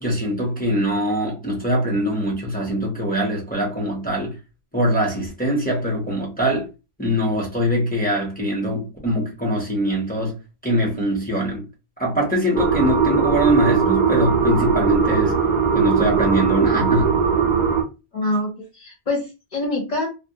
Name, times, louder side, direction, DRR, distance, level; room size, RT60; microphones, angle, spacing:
voice 1, 0.0-4.4 4.7-6.7 7.0-10.4 10.6-11.6 12.0-15.4 15.7-17.1, equal, 10° left, 0.6 m, -22 dB
sound 1, 12.5-17.8, right 6 dB, 55° right, 0.6 m, -19 dB
voice 2, 18.1-20.1, left 2 dB, 45° left, 0.7 m, -25 dB
2.2 x 2.1 x 2.7 m
omnidirectional pair, 1.1 m